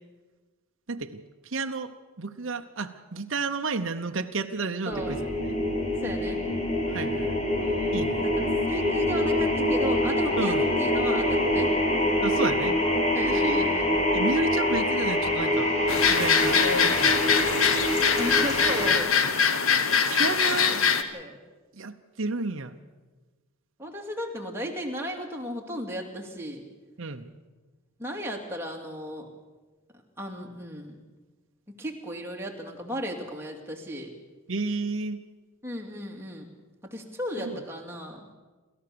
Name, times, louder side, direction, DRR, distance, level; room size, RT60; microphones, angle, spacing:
voice 1, 0.9-1.9 2.2-5.6 6.9-7.4 7.9-8.2 10.4-10.6 12.2-12.8 13.2-13.7 14.1-15.8 16.1-17.3 20.1-20.9 21.7-22.8 27.0-27.3 34.5-35.2 37.4-37.6, right 3 dB, 60° right, 5 dB, 0.9 m, -32 dB
sound 1, 4.9-18.9, left 1 dB, 30° left, 2.8 m, -25 dB
voice 2, 4.9-5.2 6.0-6.4 7.6-11.7 13.1-14.0 18.1-19.1 20.7-20.8 21.1-21.4 23.8-26.6 28.0-29.3 30.2-31.0 31.8-34.1 35.6-36.5 36.8-38.2, equal, 10° right, 0 dB, 2.5 m, -35 dB
sound 2, 15.9-21.0, left 6 dB, 70° left, 1.3 m, -23 dB
28.0 x 14.0 x 6.9 m, 1.3 s
head